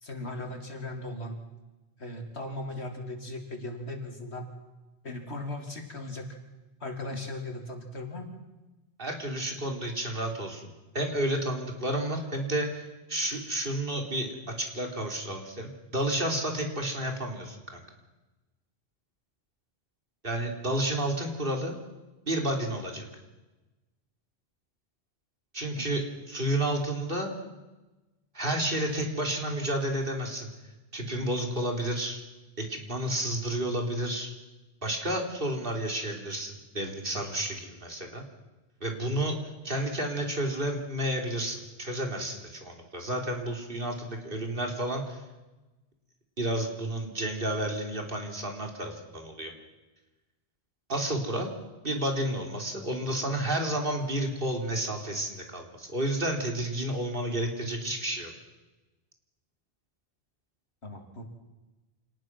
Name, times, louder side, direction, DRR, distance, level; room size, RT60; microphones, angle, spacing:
voice 1, 0.0-1.4 2.0-4.5 5.0-6.3 6.8-8.3 25.8-25.9 60.8-61.3, left 2 dB, 85° left, 4 dB, 3.3 m, -38 dB
voice 2, 9.0-10.7 10.9-14.3 14.6-17.8 20.2-21.8 22.3-23.1 25.5-27.3 28.3-30.5 30.9-32.2 32.6-34.3 34.8-38.2 38.8-39.4 39.6-45.2 46.4-49.5 50.9-51.5 51.8-58.3, right 1 dB, 55° right, 2 dB, 3.7 m, -31 dB
27.5 x 19.0 x 6.1 m, 1.1 s
omnidirectional pair, 1.1 m